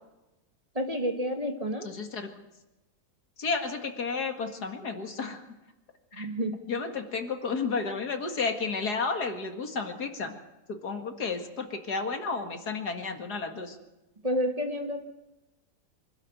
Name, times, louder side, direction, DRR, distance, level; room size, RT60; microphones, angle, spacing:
voice 1, 0.7-1.9 6.1-6.6 14.2-15.0, equal, 20° right, 4 dB, 1.8 m, -30 dB
voice 2, 1.8-2.3 3.4-5.4 6.1-6.3 6.7-10.3 10.7-13.8, left 4 dB, 50° left, 5 dB, 2.4 m, -32 dB
25.0 x 12.5 x 9.1 m, 1.0 s
omnidirectional pair, 2.2 m